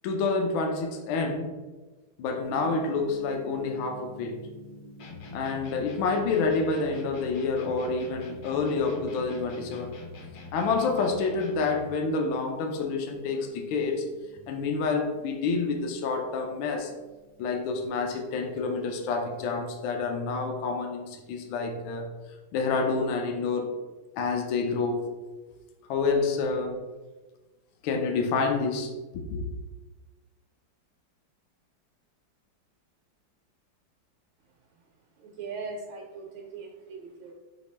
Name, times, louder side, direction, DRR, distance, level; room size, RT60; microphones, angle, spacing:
voice 1, 0.0-1.5 2.2-4.4 5.3-9.9 10.5-14.1 14.5-16.9 17.4-22.1 22.5-23.7 24.2-25.1 25.9-26.8 27.8-29.4, left 4 dB, 80° left, 3 dB, 1.4 m, -28 dB
Gong, 2.4-19.7, right 1 dB, 50° left, 0.6 m, -50 dB
sound 1, 5.0-12.0, left 4 dB, 65° left, 1.0 m, -44 dB
voice 2, 35.2-37.3, right 4 dB, 75° right, 0 dB, 1.3 m, -40 dB
5.2 x 2.8 x 3.3 m, 1.2 s
omnidirectional pair, 2.2 m